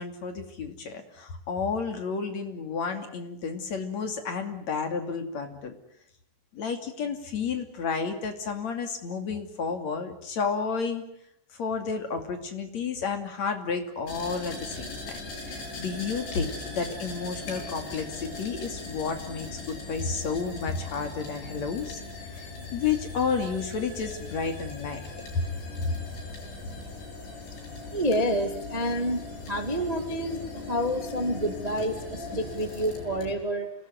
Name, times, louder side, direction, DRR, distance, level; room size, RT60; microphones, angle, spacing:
voice 1, 0.0-5.7 6.5-11.0 11.6-22.0 22.3-25.0 25.3-25.4 25.8-25.9, left 5 dB, 45° left, 6 dB, 3.4 m, -31 dB
sound 1, 14.1-33.3, left 2 dB, 65° left, 9.8 m, -39 dB
voice 2, 27.9-33.7, equal, 40° right, 6 dB, 0.5 m, -29 dB
28.0 x 19.5 x 9.4 m, 0.77 s
omnidirectional pair, 5.2 m